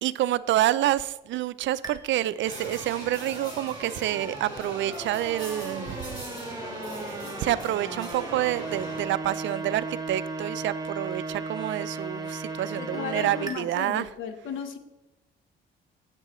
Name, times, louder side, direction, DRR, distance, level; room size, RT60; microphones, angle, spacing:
voice 1, 0.0-6.2 7.0-14.1, right 13 dB, 70° right, 0.4 m, -28 dB
sound 1, 1.8-13.6, right 3 dB, 20° right, 1.2 m, -37 dB
sound 2, 2.4-9.0, equal, 20° left, 3.0 m, -40 dB
voice 2, 12.8-14.8, left 6 dB, 85° left, 1.0 m, -35 dB
10.5 x 8.2 x 3.0 m
cardioid pair, 90°, 20 cm